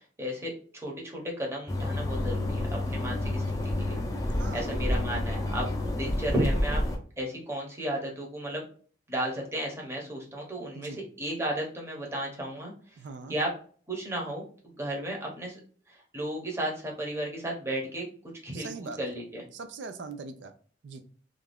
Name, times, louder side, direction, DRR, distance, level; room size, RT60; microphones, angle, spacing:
voice 1, 0.0-6.8 7.2-8.6 9.1-13.0 13.3-13.5 13.9-15.6 15.9-18.1 18.4-19.4, right 1 dB, 15° right, -1 dB, 0.7 m, -34 dB
sound 1, 1.7-7.0, left 1 dB, 20° left, 0.5 m, -29 dB
voice 2, 4.3-5.0 10.7-11.0 13.0-13.4 18.5-19.0 19.5-20.5 20.8-21.0, right 4 dB, 85° right, 8 dB, 0.4 m, -41 dB
2.5 x 2.3 x 3.3 m, 0.43 s
head